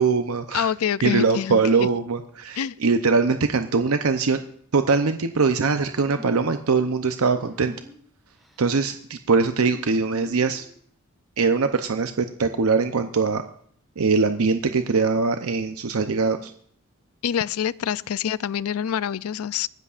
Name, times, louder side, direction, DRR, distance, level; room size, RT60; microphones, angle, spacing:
voice 1, 0.0-0.7 1.0-4.4 4.7-7.7 8.6-10.7 11.4-13.4 14.0-16.5, right 4 dB, 80° right, 8 dB, 0.7 m, -22 dB
voice 2, 0.5-1.9 2.6-2.7 17.2-19.7, left 9 dB, 90° left, 19 dB, 0.4 m, -26 dB
sound 1, 5.9-6.5 7.3-8.0 8.4-8.8 9.6-10.8, left 1 dB, ahead, 1.5 m, -45 dB
24.5 x 12.5 x 2.5 m, 0.62 s
head